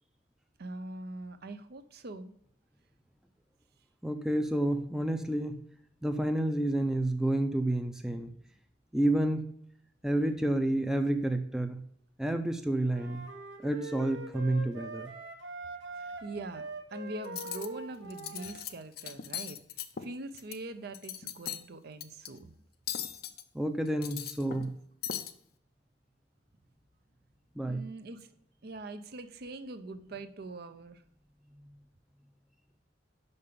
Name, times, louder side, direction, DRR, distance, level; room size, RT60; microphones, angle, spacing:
voice 1, 0.6-2.3 15.9-16.6 16.9-19.6 20.0-22.5 27.6-28.3 28.6-31.0, right 2 dB, 55° right, 10 dB, 0.6 m, -43 dB
voice 2, 4.0-5.6 6.0-8.3 8.9-9.5 10.0-11.8 12.2-13.3 13.6-15.1 23.5-24.7 27.6-27.8, right 1 dB, 5° right, 5 dB, 0.5 m, -29 dB
sound 1, 12.9-18.7, right 2 dB, 75° right, 1.2 m, -43 dB
Cutlery silverware, 17.2-17.7 18.1-18.7 19.0-20.6 20.9-21.6 22.0-22.3 22.9-23.4 23.9-24.7 25.0-25.3, left 10 dB, 55° left, 0.5 m, -38 dB
5.6 x 5.5 x 6.7 m, 0.70 s
head